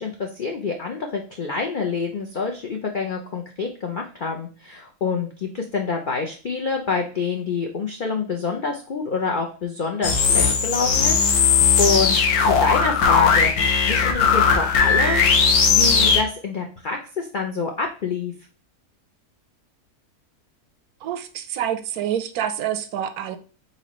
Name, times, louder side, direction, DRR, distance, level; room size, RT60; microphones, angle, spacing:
voice 1, 0.0-15.3 15.7-18.3, left 4 dB, 55° left, 1 dB, 0.5 m, -27 dB
sound 1, 10.0-16.2, left 5 dB, 80° left, 1.3 m, -18 dB
voice 2, 21.0-23.4, right 10 dB, 80° right, 11 dB, 1.1 m, -27 dB
4.2 x 4.1 x 3.0 m, 0.36 s
omnidirectional pair, 1.6 m